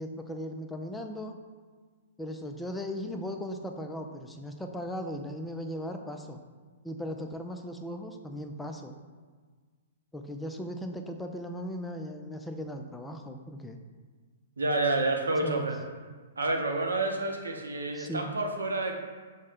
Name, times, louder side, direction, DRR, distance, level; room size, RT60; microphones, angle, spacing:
voice 1, 0.0-1.3 2.2-6.4 6.8-8.9 10.1-13.8 15.4-15.7 17.9-18.3, equal, 5° left, 4 dB, 0.3 m, -37 dB
voice 2, 14.6-15.8 16.4-18.9, right 2 dB, 85° right, 2 dB, 0.6 m, -29 dB
6.3 x 2.1 x 3.5 m, 1.5 s
hypercardioid pair, 120°, 0 cm